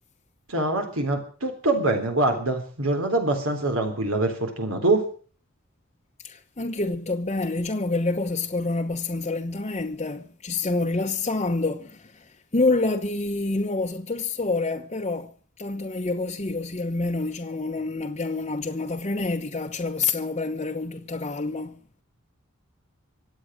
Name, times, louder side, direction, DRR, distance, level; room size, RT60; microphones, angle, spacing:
voice 1, 0.5-5.0, right 2 dB, 75° right, 3.7 m, -24 dB
voice 2, 6.2-21.8, left 3 dB, 30° left, 1.1 m, -27 dB
24.5 x 8.7 x 6.4 m
head